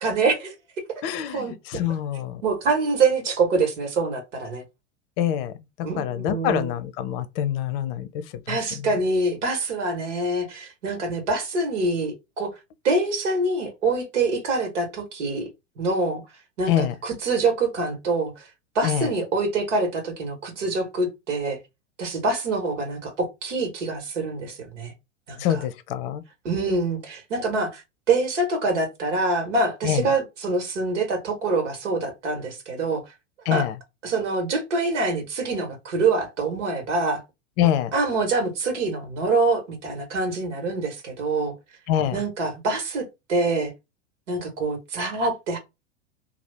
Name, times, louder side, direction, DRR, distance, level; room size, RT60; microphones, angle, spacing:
voice 1, 0.0-0.5 1.3-1.8 2.4-4.6 5.8-6.7 8.5-12.5 12.8-15.5 15.8-16.2 16.6-18.4 18.7-21.6 22.0-24.9 25.3-25.6 26.4-33.0 33.4-33.7 34.0-37.2 37.9-41.5 42.1-43.7 44.3-45.6, right 3 dB, 70° right, 1.4 m, -25 dB
voice 2, 1.0-1.5 1.7-2.4 5.2-5.5 6.0-8.1 8.5-8.6 16.7-16.9 18.8-19.1 25.4-26.2 29.8-30.1 33.5-33.7 37.6-37.9 41.9-42.2, left 10 dB, 50° left, 0.6 m, -25 dB
2.7 x 2.4 x 3.3 m
figure-of-eight pair, 90°, 38 cm